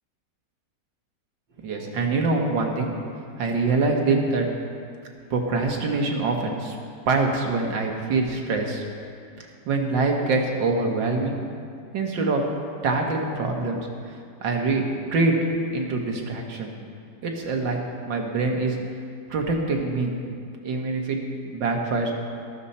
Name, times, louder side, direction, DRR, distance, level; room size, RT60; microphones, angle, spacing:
voice 1, 1.6-2.9 3.4-4.5 5.3-6.8 7.1-8.9 9.4-11.4 11.9-12.4 12.8-13.8 14.4-14.8 15.1-15.4 15.7-16.7 17.2-17.8 18.1-18.8 19.3-20.1 20.6-21.2 21.5-22.1, right 3 dB, 80° right, 1 dB, 2.0 m, -24 dB
12.5 x 12.5 x 4.2 m, 2.3 s
omnidirectional pair, 2.0 m